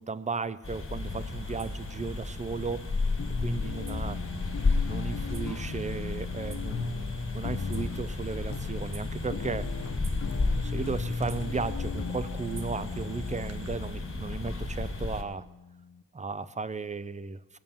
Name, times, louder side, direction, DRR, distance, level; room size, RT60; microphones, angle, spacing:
voice 1, 0.0-2.9 3.4-4.2 4.9-9.7 10.6-15.4 16.1-17.6, right 4 dB, 20° right, 15 dB, 0.6 m, -35 dB
sound 1, 0.6-15.2, left 3 dB, 35° left, 2.3 m, -33 dB
sound 2, 1.0-13.7, right 4 dB, 40° right, 1.5 m, -48 dB
sound 3, 3.2-16.0, left 5 dB, 55° left, 1.2 m, -38 dB
19.5 x 7.3 x 7.2 m, 1.1 s
cardioid pair, 80°, 38 cm